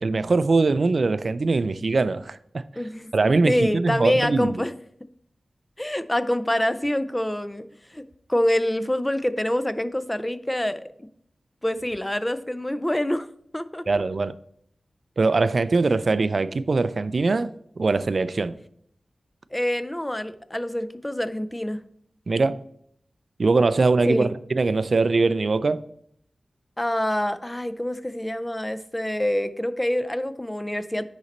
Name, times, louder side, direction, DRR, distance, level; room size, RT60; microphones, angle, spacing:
voice 1, 0.0-2.6 3.1-4.6 13.9-14.4 15.2-18.6 22.3-22.6 23.4-25.8, right 3 dB, 55° right, 0.4 m, -22 dB
voice 2, 2.8-3.1 3.4-4.7 5.8-8.0 8.3-11.1 11.6-13.3 13.5-13.9 19.5-21.8 24.1-24.3 26.8-31.0, left 1 dB, 10° left, 0.4 m, -26 dB
10.0 x 4.1 x 4.2 m
wide cardioid pair, 110°, 0 cm